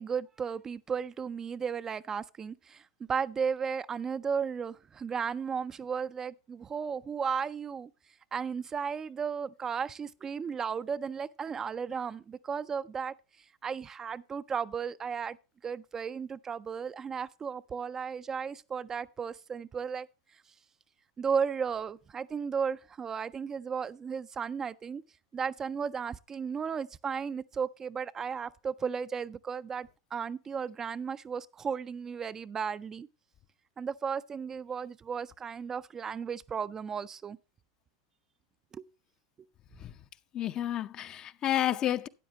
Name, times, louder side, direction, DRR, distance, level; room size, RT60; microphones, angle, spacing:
voice 1, 0.0-2.8 3.1-7.9 8.3-13.1 13.6-15.4 15.6-20.1 21.2-25.0 25.3-33.1 33.8-37.4 38.7-38.9, right 6 dB, 25° right, 0.4 m, -34 dB
voice 2, 40.3-42.1, left 12 dB, 35° left, 0.6 m, -30 dB
12.5 x 9.2 x 2.9 m
hypercardioid pair, 90°, 2 cm